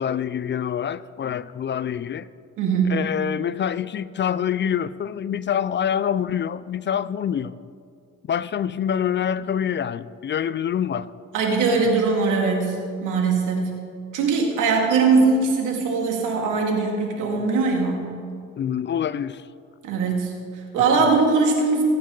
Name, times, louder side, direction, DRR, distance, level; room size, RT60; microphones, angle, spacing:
voice 1, 0.0-2.3 2.9-7.6 8.3-11.1 18.6-19.4 20.9-21.0, left 9 dB, 40° left, 0.4 m, -26 dB
voice 2, 2.6-3.0 11.3-13.9 14.1-18.2 19.8-21.8, right 4 dB, 85° right, 2.4 m, -21 dB
19.0 x 9.0 x 3.9 m
cardioid pair, 90°, 30 cm